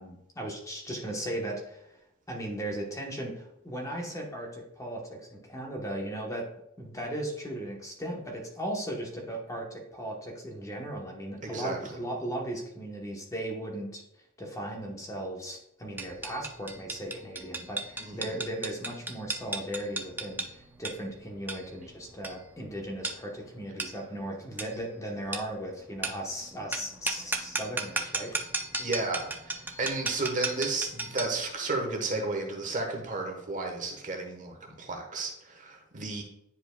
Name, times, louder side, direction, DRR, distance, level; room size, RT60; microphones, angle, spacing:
voice 1, 0.0-1.9 2.3-6.5 6.8-14.0 14.4-28.4, right 1 dB, 15° left, 1 dB, 0.9 m, -37 dB
voice 2, 11.4-11.8 18.0-18.3 28.8-36.2, right 3 dB, 35° right, 2 dB, 1.1 m, -33 dB
sound 1, 16.0-31.4, right 2 dB, 10° right, 0.4 m, -36 dB
10.0 x 4.8 x 2.2 m, 0.82 s
head